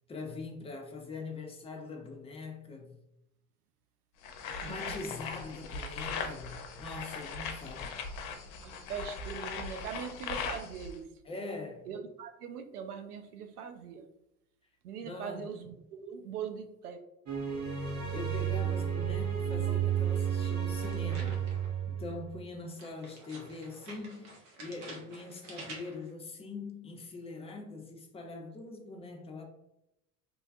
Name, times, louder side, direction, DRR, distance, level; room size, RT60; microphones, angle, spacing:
voice 1, 0.1-3.0 4.6-8.0 11.3-11.8 15.0-15.5 17.8-21.5 21.9-29.4, left 3 dB, 15° left, 0.5 m, -43 dB
sound 1, 4.2-11.0, left 5 dB, 60° left, 0.6 m, -39 dB
voice 2, 4.5-5.0 8.6-11.1 11.9-14.1 14.8-17.0 19.7-19.8, right 7 dB, 85° right, 0.5 m, -41 dB
sound 2, 17.3-22.4, right 9 dB, 40° right, 0.7 m, -32 dB
sound 3, 20.8-21.8 22.8-26.1, right 2 dB, 70° right, 1.1 m, -49 dB
3.2 x 2.2 x 2.5 m
hypercardioid pair, 75°, 44 cm